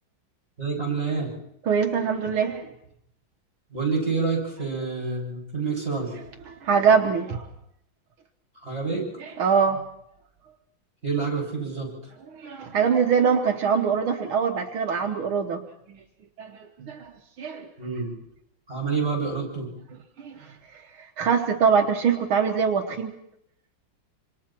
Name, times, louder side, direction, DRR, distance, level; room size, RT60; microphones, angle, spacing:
voice 1, 0.6-1.3 3.7-6.2 8.6-9.1 11.0-11.9 17.8-18.1 18.7-19.7, right 4 dB, 30° right, -1 dB, 7.7 m, -27 dB
voice 2, 1.7-2.7 6.5-7.5 9.2-9.8 12.3-15.6 15.9-16.0 16.4-17.1 17.4-17.7 20.2-23.1, right 6 dB, 80° right, 3 dB, 2.0 m, -23 dB
26.5 x 26.5 x 4.5 m, 0.75 s
omnidirectional pair, 2.2 m